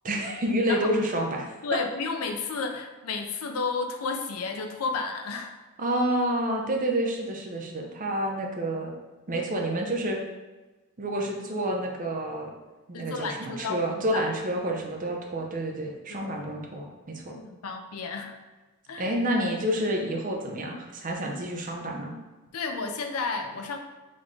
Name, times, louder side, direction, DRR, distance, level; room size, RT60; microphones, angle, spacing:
voice 1, 0.0-1.5 5.8-8.9 9.3-10.2 11.0-12.5 12.9-17.4 19.0-22.1, right 1 dB, 35° right, 1 dB, 0.6 m, -29 dB
voice 2, 1.6-5.5 12.9-14.3 16.1-16.3 17.3-18.4 18.9-19.1 22.5-23.8, left 4 dB, 75° left, 5 dB, 0.5 m, -32 dB
4.1 x 3.5 x 3.2 m, 1.2 s
head